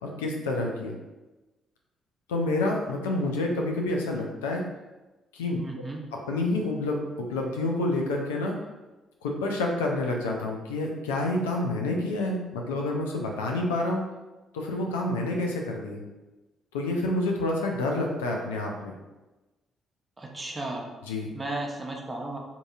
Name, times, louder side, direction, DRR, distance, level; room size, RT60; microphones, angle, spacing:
voice 1, 0.0-1.0 2.3-4.6 5.3-5.6 6.3-8.5 9.2-14.0 14.5-16.0 16.7-18.9 21.1-21.3, left 2 dB, 90° left, 0 dB, 0.3 m, -28 dB
voice 2, 5.6-6.0 20.2-20.9 21.3-22.4, right 2 dB, 25° right, 0 dB, 0.6 m, -34 dB
2.6 x 2.6 x 2.3 m, 1.1 s
hypercardioid pair, 50°, 0 cm